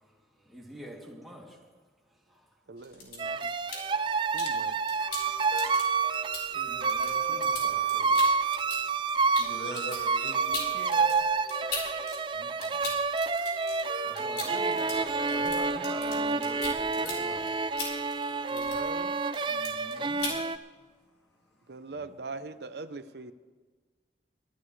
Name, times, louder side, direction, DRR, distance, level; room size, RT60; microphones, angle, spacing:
voice 1, 0.5-1.4 6.5-8.2 14.0-17.5 19.5-20.3 22.0-22.1, equal, ahead, -4 dB, 2.7 m, -45 dB
voice 2, 2.7-3.6 4.3-4.7 18.5-19.2 21.7-23.3, right 3 dB, 70° right, 11 dB, 0.7 m, -41 dB
sound 1, 2.8-4.5 4.9-12.2 12.4-19.0 19.3-19.9 20.2-20.4, left 3 dB, 70° left, 4.6 m, -39 dB
sound 2, 3.2-20.6, right 4 dB, 25° right, 0.3 m, -29 dB
Guitar, 3.7-18.3, right 1 dB, 45° right, 2.0 m, -45 dB
voice 3, 9.4-11.1 18.4-18.5 19.8-20.5, left 1 dB, 85° left, 2 dB, 2.0 m, -43 dB
23.5 x 13.5 x 3.2 m, 1.4 s
head